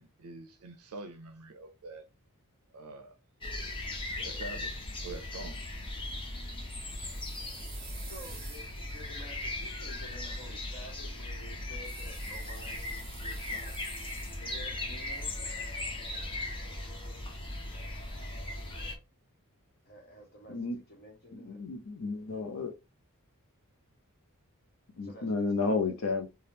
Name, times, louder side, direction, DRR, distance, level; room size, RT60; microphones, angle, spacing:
voice 1, 0.0-2.1 2.7-3.2 4.2-5.6, right 3 dB, 75° right, 0.4 m, -45 dB
sound 1, 3.4-19.0, left 2 dB, 25° left, 0.8 m, -38 dB
sound 2, 6.8-9.8 11.8-14.7 14.9-16.0, right 6 dB, 40° right, 0.9 m, -51 dB
voice 2, 8.0-13.7 14.3-15.4 19.9-21.6 25.0-26.2, left 1 dB, 45° left, 1.2 m, -51 dB
voice 3, 21.3-22.7 25.0-26.3, left 3 dB, 65° left, 0.6 m, -32 dB
3.4 x 2.3 x 2.7 m
head